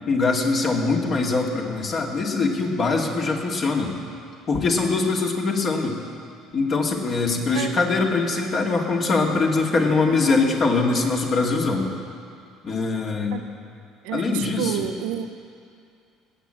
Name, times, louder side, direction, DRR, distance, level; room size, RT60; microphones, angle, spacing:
voice 1, 0.1-3.9 4.5-6.0 6.5-11.9 12.6-13.4 14.1-14.9, left 3 dB, 45° left, 0 dB, 2.3 m, -22 dB
voice 2, 14.0-15.3, right 10 dB, 65° right, 9 dB, 0.8 m, -29 dB
18.5 x 7.7 x 7.7 m, 2.4 s
figure-of-eight pair, 60°, 0 cm